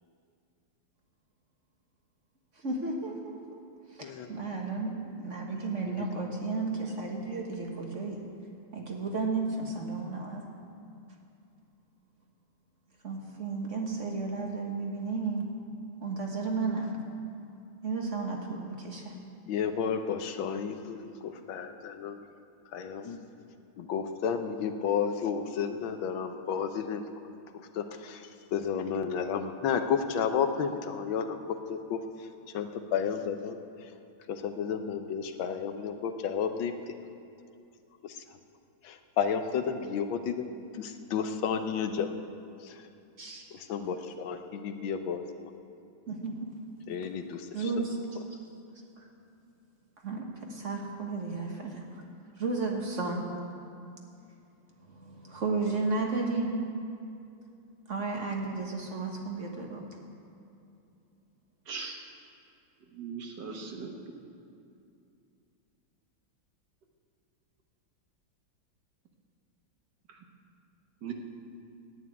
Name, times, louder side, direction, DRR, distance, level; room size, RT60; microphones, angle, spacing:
voice 1, 2.6-3.6 3.9-8.2 8.7-10.5 13.0-15.5 16.0-16.9 17.8-19.1 43.2-43.4 46.1-46.3 47.5-48.0 49.0-49.1 50.0-51.8 52.4-53.2 54.9-56.6 57.9-60.0, right 3 dB, 40° right, 1 dB, 1.5 m, -33 dB
voice 2, 4.0-4.4 5.8-6.2 19.5-22.3 22.7-23.3 23.8-27.0 27.7-31.4 31.7-32.3 32.5-33.9 34.3-36.7 38.0-38.2 38.8-40.5 40.7-42.2 42.6-42.9 43.5-45.5 46.9-47.7, left 7 dB, 75° left, 8 dB, 1.5 m, -32 dB
voice 3, 61.7-62.1 62.9-64.2 70.1-70.2 71.0-71.1, right 5 dB, 60° right, 2 dB, 1.7 m, -40 dB
11.0 x 9.1 x 9.3 m, 2.5 s
omnidirectional pair, 2.2 m